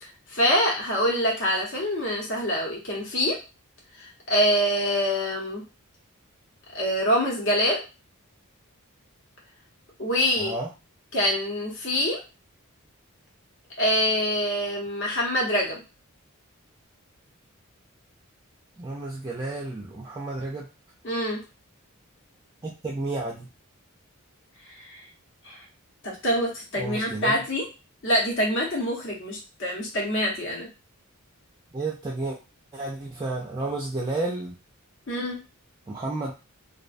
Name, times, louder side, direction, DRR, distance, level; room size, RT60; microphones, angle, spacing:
voice 1, 0.0-3.4 4.0-5.6 6.7-7.8 10.0-10.5 11.1-12.2 13.8-15.8 21.0-21.4 24.8-25.0 25.4-25.6 26.0-27.6 28.0-30.7 35.1-35.4, equal, 60° left, -2 dB, 0.9 m, -25 dB
voice 2, 10.4-10.7 18.8-20.7 22.6-23.5 26.8-27.4 31.7-32.4 32.7-34.5 35.9-36.3, right 2 dB, 20° right, -2 dB, 0.3 m, -31 dB
2.3 x 2.2 x 2.5 m, 0.30 s
head